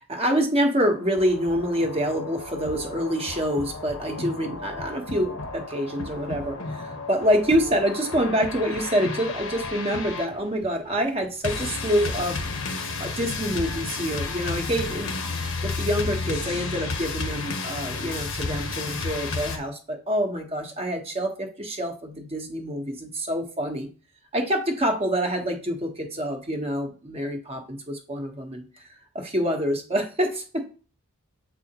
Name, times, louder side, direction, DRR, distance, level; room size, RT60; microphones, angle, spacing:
voice 1, 0.1-12.4 13.0-23.9 24.3-28.8 29.1-30.6, equal, 30° right, 3 dB, 1.2 m, -26 dB
sound 1, 0.8-19.6, left 3 dB, 70° left, 1.1 m, -32 dB
7.6 x 4.2 x 2.9 m, 0.36 s
head